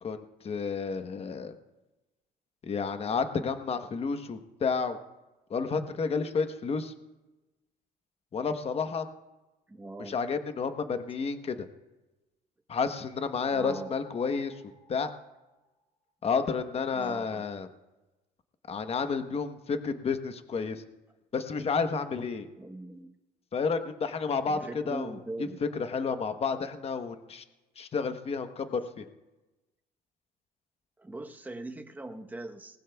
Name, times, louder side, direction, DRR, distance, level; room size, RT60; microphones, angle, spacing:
voice 1, 0.0-1.6 2.6-5.0 5.5-6.9 8.3-9.1 10.0-11.7 12.7-15.1 16.2-17.7 18.7-20.8 21.3-22.5 23.5-27.4 27.8-29.1, left 5 dB, 35° left, 8 dB, 1.0 m, -31 dB
voice 2, 9.7-10.2 13.5-13.9 16.9-17.4 22.6-23.1 24.5-25.6 31.0-32.8, right 2 dB, 10° right, 5 dB, 0.9 m, -41 dB
sound 1, 13.4-15.9, left 3 dB, 15° left, 4.7 m, -54 dB
20.0 x 19.5 x 2.3 m, 1.1 s
cardioid pair, 110°, 17 cm